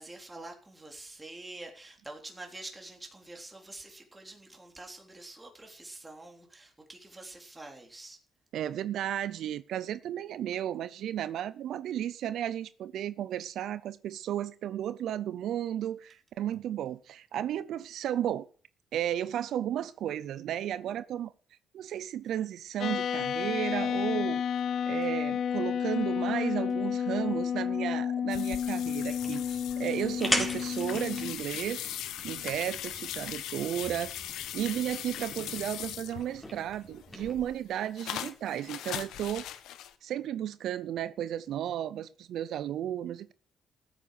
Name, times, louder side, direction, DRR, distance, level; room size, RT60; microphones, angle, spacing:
voice 1, 0.0-8.2, right 2 dB, 15° right, 3.5 m, -46 dB
voice 2, 8.5-18.5 18.9-21.3 21.7-24.4 24.9-31.8 32.2-34.1 34.5-39.5 40.0-43.3, right 11 dB, 75° right, 0.6 m, -34 dB
sound 1, 22.8-31.3, left 8 dB, 65° left, 1.0 m, -31 dB
sound 2, 28.3-36.5 36.9-39.9, left 12 dB, 85° left, 1.2 m, -40 dB
sound 3, 28.8-37.4, left 1 dB, 10° left, 4.1 m, -39 dB
14.5 x 8.9 x 6.6 m
cardioid pair, 90°, 0 cm